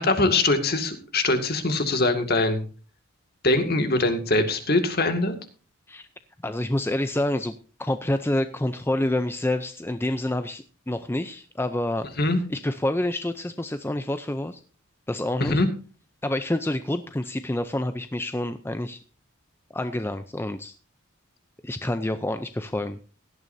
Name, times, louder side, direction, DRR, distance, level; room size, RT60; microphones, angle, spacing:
voice 1, 0.0-2.6 3.4-5.3 12.2-12.4 15.4-15.7, left 2 dB, 45° left, 7 dB, 2.1 m, -22 dB
voice 2, 6.4-12.1 12.5-14.6 15.1-15.6 16.2-19.0 19.7-20.7 21.6-23.0, left 1 dB, 10° left, 10 dB, 0.5 m, -28 dB
17.0 x 12.0 x 2.7 m, 0.37 s
head